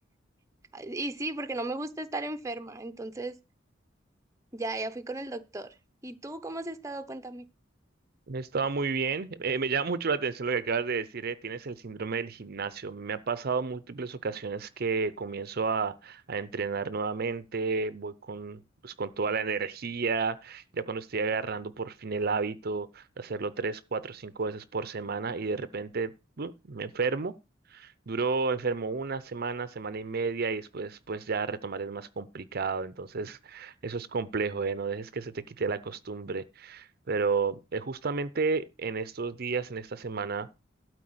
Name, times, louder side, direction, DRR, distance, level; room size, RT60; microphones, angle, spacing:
voice 1, 0.7-3.3 4.5-5.7 6.0-7.4, right 2 dB, 15° right, 0.7 m, -35 dB
voice 2, 8.3-26.1 26.4-27.3 27.7-40.5, right 4 dB, 50° right, 0.6 m, -32 dB
12.5 x 4.7 x 7.9 m
head